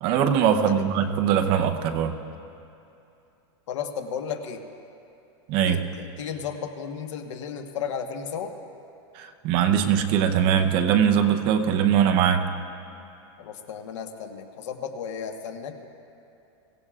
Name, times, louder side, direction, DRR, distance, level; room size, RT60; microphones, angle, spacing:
voice 1, 0.0-2.2 5.5-5.8 9.1-12.5, right 8 dB, 35° right, 6 dB, 0.7 m, -21 dB
voice 2, 3.7-4.6 5.6-8.5 13.4-15.9, left 7 dB, 80° left, 5 dB, 1.4 m, -34 dB
24.0 x 17.0 x 2.5 m, 2.7 s
supercardioid pair, 165°, 15 cm